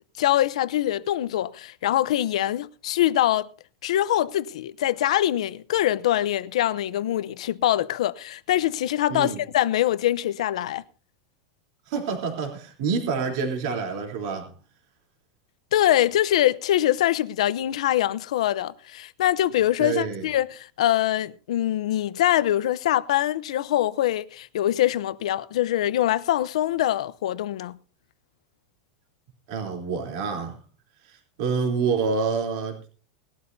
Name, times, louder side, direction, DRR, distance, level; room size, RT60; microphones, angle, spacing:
voice 1, 0.2-3.5 3.8-10.8 15.7-27.8, left 13 dB, 80° left, 0.7 m, -23 dB
voice 2, 9.1-9.4 11.9-14.5 19.8-20.3 29.5-30.6 31.0-32.9, right 5 dB, 50° right, 3.4 m, -27 dB
20.5 x 12.5 x 2.7 m
supercardioid pair, 175°, 3 cm